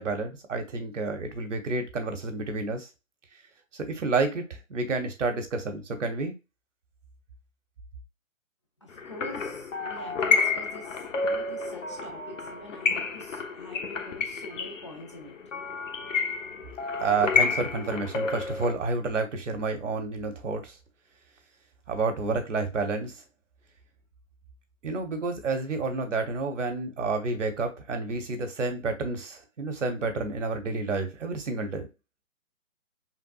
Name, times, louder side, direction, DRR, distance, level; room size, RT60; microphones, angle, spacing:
voice 1, 0.0-2.9 3.7-6.3 17.0-20.7 21.9-23.2 24.8-31.9, right 3 dB, 60° right, 1.2 m, -30 dB
voice 2, 8.8-15.4, left 1 dB, 25° left, 0.5 m, -45 dB
sound 1, 9.0-18.7, left 4 dB, 65° left, 0.9 m, -29 dB
5.9 x 2.3 x 2.4 m
figure-of-eight pair, 140°, 40 cm